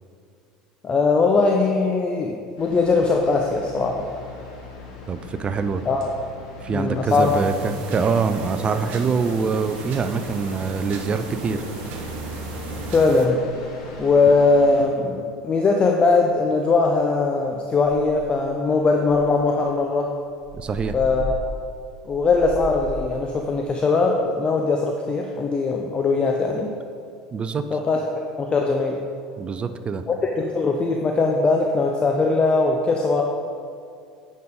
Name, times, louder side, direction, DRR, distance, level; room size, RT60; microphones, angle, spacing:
voice 1, 0.8-4.1 5.9-6.1 6.7-7.5 12.9-13.4 14.0-20.1 20.9-21.6 22.1-26.7 27.7-28.1 28.4-29.0 30.1-33.2, left 3 dB, 30° left, 2 dB, 0.7 m, -20 dB
sound 1, 2.6-14.8, left 2 dB, 70° left, 1.6 m, -39 dB
voice 2, 5.1-5.8 6.6-11.6 20.5-21.0 27.3-27.7 29.4-30.0, right 5 dB, 30° right, 10 dB, 0.5 m, -24 dB
sound 2, 7.1-13.3, right 3 dB, 55° right, 1.0 m, -35 dB
sound 3, 18.1-18.5 19.0-23.2, right 1 dB, ahead, 1.7 m, -36 dB
9.3 x 5.4 x 3.7 m, 2.3 s
hypercardioid pair, 70°, 3 cm